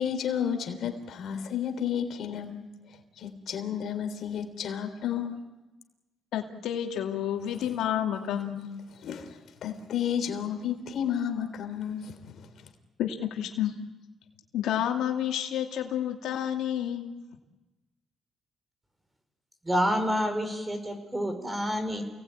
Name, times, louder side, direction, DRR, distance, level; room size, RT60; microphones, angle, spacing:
voice 1, 0.0-2.6 3.2-5.4 9.0-12.2, left 8 dB, 65° left, 3.5 m, -32 dB
voice 2, 6.3-8.7 13.0-13.7 14.5-17.0, left 10 dB, 85° left, 2.5 m, -30 dB
voice 3, 19.6-22.0, equal, 15° right, 5.1 m, -28 dB
29.0 x 18.5 x 8.9 m
cardioid pair, 90°, 0 cm